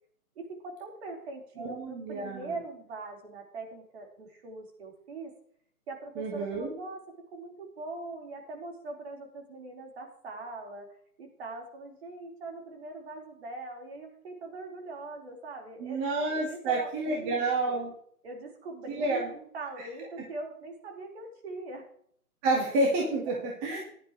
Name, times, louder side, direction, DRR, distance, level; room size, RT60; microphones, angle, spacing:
voice 1, 0.4-5.3 5.9-7.0 7.3-10.9 11.2-16.1 16.4-17.8 18.2-21.9 23.0-23.4, right 2 dB, 45° right, 1 dB, 4.5 m, -42 dB
voice 2, 1.6-2.5 6.2-6.8 15.8-17.9 18.9-19.3 22.4-23.8, right 2 dB, 20° right, -1 dB, 1.8 m, -29 dB
15.5 x 11.0 x 3.2 m, 0.62 s
hypercardioid pair, 155°, 44 cm